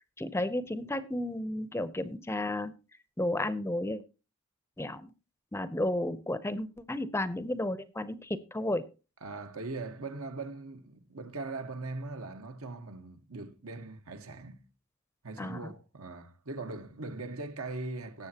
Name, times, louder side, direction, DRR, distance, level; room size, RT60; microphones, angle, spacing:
voice 1, 0.2-2.7 3.2-4.0 4.8-5.1 5.5-8.8 15.4-15.7, left 1 dB, 10° left, 0.6 m, -32 dB
voice 2, 9.2-14.7 15.2-18.3, right 3 dB, 80° right, 1.3 m, -40 dB
18.5 x 7.8 x 2.9 m
head